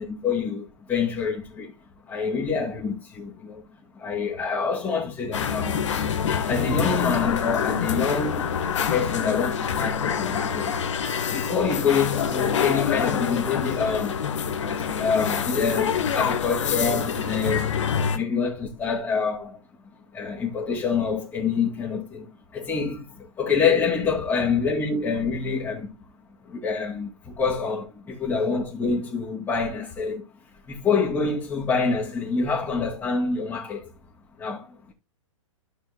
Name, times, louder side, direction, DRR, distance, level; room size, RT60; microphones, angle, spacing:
voice 1, 0.0-1.7 2.1-3.7 3.9-5.8 6.3-8.6 8.9-10.8 11.3-14.2 14.8-17.8 18.1-19.6 20.1-25.9 26.5-30.2 30.7-33.9 34.4-34.9, left 5 dB, 15° left, 2.5 m, -26 dB
sound 1, 5.3-18.2, left 7 dB, 60° left, 1.4 m, -26 dB
14.0 x 6.2 x 2.3 m
figure-of-eight pair, 115°, 17 cm